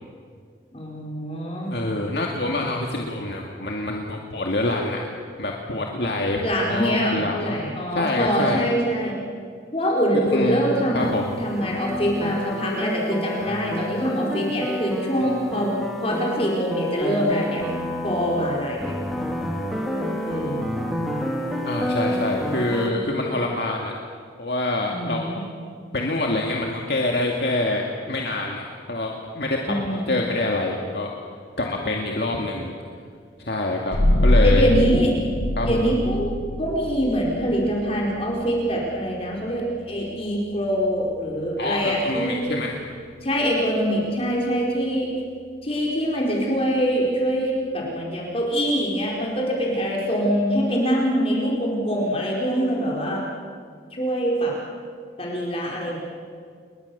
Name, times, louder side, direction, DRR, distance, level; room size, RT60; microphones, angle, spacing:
voice 1, 0.7-1.7 6.4-9.2 9.7-11.1 11.4-17.6 18.0-18.9 20.2-20.8 24.9-25.4 29.6-30.2 34.4-35.1 35.6-42.4 43.2-45.1 45.6-53.2 53.9-54.5 55.2-56.0, equal, 30° left, -3 dB, 4.4 m, -24 dB
voice 2, 1.7-5.0 5.4-7.6 7.9-8.6 10.3-10.6 10.9-11.4 21.6-23.9 24.4-25.5 25.9-31.1 31.6-32.7 33.4-34.0 34.2-34.6 35.6-35.8 41.6-42.7, left 2 dB, 60° left, 0 dB, 2.3 m, -26 dB
sound 1, 11.0-22.9, equal, ahead, 3.2 m, -29 dB
sound 2, 33.9-45.2, left 1 dB, 75° left, 1.5 m, -26 dB
30.0 x 21.5 x 7.0 m, 2.1 s
head